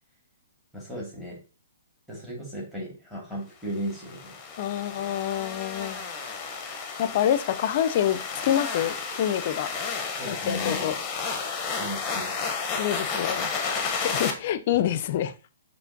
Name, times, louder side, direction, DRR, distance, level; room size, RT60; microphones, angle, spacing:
voice 1, 0.7-1.4 2.1-4.4 10.2-10.9 11.8-12.4, equal, 5° right, 2.1 m, -35 dB
sound 1, 3.9-14.3, left 5 dB, 25° left, 0.8 m, -32 dB
voice 2, 4.6-6.0 7.0-9.7 10.3-11.0 12.8-15.3, left 10 dB, 50° left, 0.4 m, -27 dB
6.1 x 2.9 x 2.6 m
hypercardioid pair, 130°, 0 cm